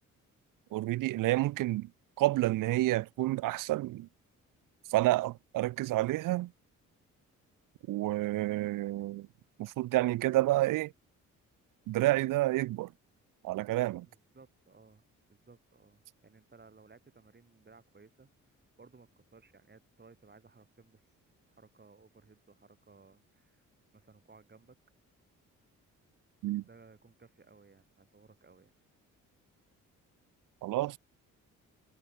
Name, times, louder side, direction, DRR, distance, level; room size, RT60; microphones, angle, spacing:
voice 1, 0.7-1.9 2.2-4.1 4.9-6.5 7.9-9.3 9.6-10.9 11.9-12.9 13.4-14.1 26.4-26.6 30.6-30.9, right 17 dB, 75° right, 0.6 m, -29 dB
voice 2, 14.1-15.0 15.3-18.3 18.8-21.0 21.5-23.7 23.9-24.8 26.6-28.7, right 4 dB, 30° right, 6.8 m, -59 dB
cardioid pair, 75°, 32 cm